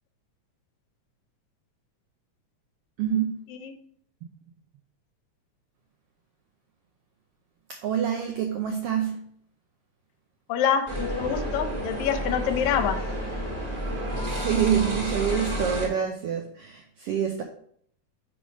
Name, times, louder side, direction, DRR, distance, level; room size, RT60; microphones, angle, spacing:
voice 1, 3.0-3.4 7.8-9.2 14.2-17.4, right 8 dB, 85° right, 3 dB, 1.3 m, -26 dB
voice 2, 10.5-13.0, left 8 dB, 80° left, 8 dB, 2.0 m, -26 dB
sound 1, 10.9-15.9, equal, 20° right, 1.4 m, -30 dB
7.0 x 3.4 x 5.1 m, 0.65 s
omnidirectional pair, 3.3 m